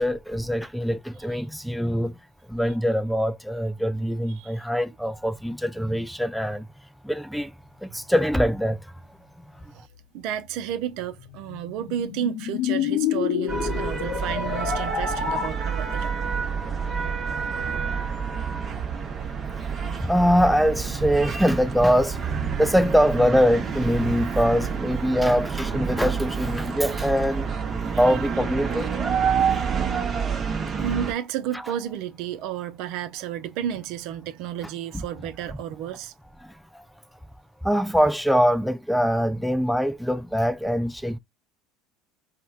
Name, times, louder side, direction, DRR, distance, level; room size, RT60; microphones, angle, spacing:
voice 1, 0.0-2.1 2.5-6.7 7.0-7.5 7.8-8.8 19.5-19.6 20.0-27.5 28.0-29.0 29.4-29.6 36.4-36.8 37.6-41.2, equal, ahead, 0.3 m, -23 dB
voice 2, 10.1-16.1 17.6-17.7 18.1-18.2 18.7-18.8 19.2-19.3 19.8-20.0 27.6-27.8 28.1-28.2 30.8-36.1, right 10 dB, 65° right, 0.4 m, -32 dB
sound 1, 10.5-15.5, left 9 dB, 65° left, 0.6 m, -28 dB
sound 2, 13.5-31.1, right 6 dB, 35° right, 0.7 m, -28 dB
4.2 x 2.1 x 2.3 m
hypercardioid pair, 80°, 0 cm